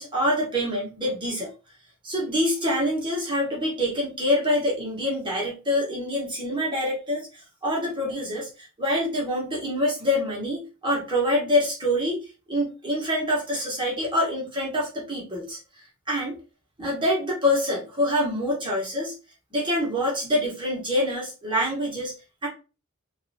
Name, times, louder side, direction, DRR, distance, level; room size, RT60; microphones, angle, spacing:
voice 1, 0.0-1.5 2.0-7.3 7.6-12.2 12.5-15.6 16.1-16.4 16.8-19.1 19.5-22.1 22.4-22.5, left 1 dB, 25° right, -5 dB, 1.1 m, -25 dB
3.2 x 2.6 x 2.7 m, 0.32 s
head